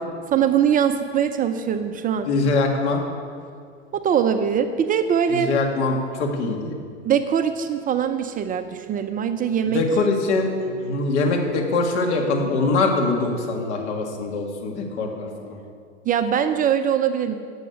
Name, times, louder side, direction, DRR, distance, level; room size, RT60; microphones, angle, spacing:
voice 1, 0.3-2.3 3.9-5.5 7.0-9.8 16.1-17.3, right 8 dB, 25° right, 8 dB, 0.5 m, -22 dB
voice 2, 2.3-3.0 5.3-6.7 9.7-15.6, left 3 dB, 70° left, 2 dB, 2.1 m, -23 dB
8.3 x 7.9 x 8.3 m, 2.2 s
hypercardioid pair, 110°, 36 cm